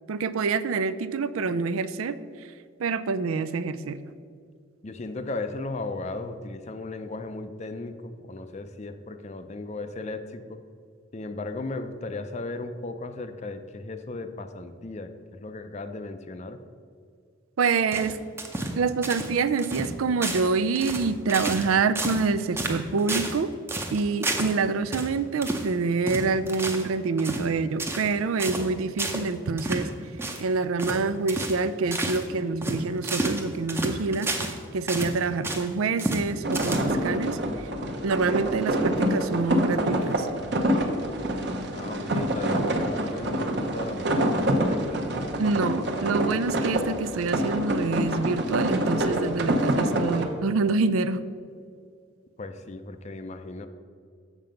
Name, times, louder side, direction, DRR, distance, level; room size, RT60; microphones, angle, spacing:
voice 1, 0.1-2.5 2.8-4.0 17.6-18.2 18.7-23.5 23.9-29.9 30.4-37.7 38.0-40.3 45.4-51.2, right 4 dB, 85° right, 13 dB, 0.4 m, -26 dB
voice 2, 4.8-10.6 11.1-16.6 41.7-45.0 52.4-53.7, left 2 dB, 35° left, 9 dB, 0.4 m, -36 dB
sound 1, 17.9-18.8 19.0-19.3 19.6-19.9 20.2-20.5 20.8-21.7 22.0-22.3 22.6-23.4 23.7-24.6 24.9-25.1 25.4-25.7 26.1-26.9 27.2-27.5 27.8-28.1 28.4-28.7 29.0-29.3 29.6-29.9 30.2-30.4 30.8-31.0 31.3-31.6 31.9-32.2 32.6-34.6 34.9-35.7 36.0-36.3 36.5-37.1, right 2 dB, 10° right, 0.6 m, -30 dB
sound 2, 36.4-50.3, right 1 dB, 55° right, 0.9 m, -26 dB
7.4 x 6.7 x 5.1 m, 2.2 s
head